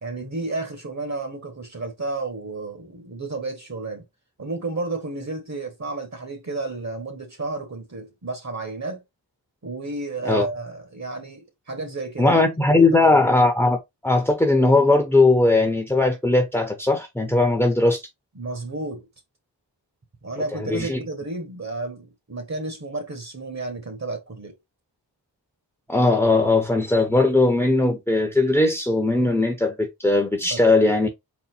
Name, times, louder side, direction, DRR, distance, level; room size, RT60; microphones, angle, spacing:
voice 1, 0.0-4.0 4.4-9.0 9.6-12.4 12.7-13.2 18.3-19.1 20.2-24.5 30.4-30.6, right 2 dB, 40° right, 1.5 m, -32 dB
voice 2, 12.2-13.8 14.0-18.0 20.6-21.0 25.9-31.1, left 2 dB, 5° left, 1.0 m, -19 dB
4.3 x 2.1 x 4.3 m
cardioid pair, 60°, 43 cm